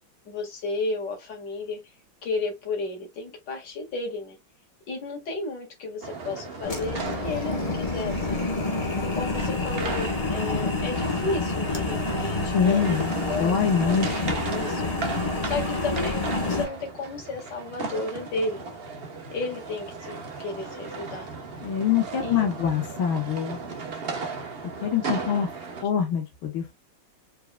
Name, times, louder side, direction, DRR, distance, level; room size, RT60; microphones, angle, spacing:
voice 1, 0.3-1.8 2.2-4.4 4.9-8.5 9.1-13.9 14.4-14.9 15.4-18.8 19.3-21.3 22.2-22.5 25.0-25.4, left 3 dB, 60° left, 2.5 m, -33 dB
sound 1, 6.0-25.8, right 4 dB, 40° right, 1.0 m, -36 dB
sound 2, 6.6-16.7, left 3 dB, 25° left, 1.0 m, -28 dB
voice 2, 12.5-14.4 21.6-23.6 24.8-25.5 25.8-26.7, left 7 dB, 85° left, 1.9 m, -25 dB
4.8 x 4.8 x 2.2 m
omnidirectional pair, 2.2 m